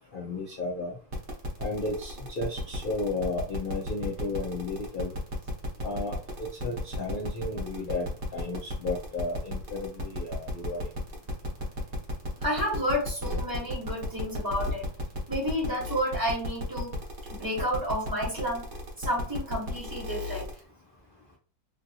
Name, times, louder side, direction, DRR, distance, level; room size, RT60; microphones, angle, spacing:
voice 1, 0.1-0.9 1.6-5.1 5.8-8.0 8.3-10.8, left 2 dB, 90° left, -3 dB, 0.4 m, -33 dB
sound 1, 1.1-20.6, equal, 45° right, 1.0 m, -35 dB
voice 2, 12.4-14.9 15.3-16.9 17.3-18.6 19.0-20.5, equal, 15° right, -3 dB, 0.8 m, -30 dB
3.1 x 2.6 x 2.7 m, 0.40 s
omnidirectional pair, 1.9 m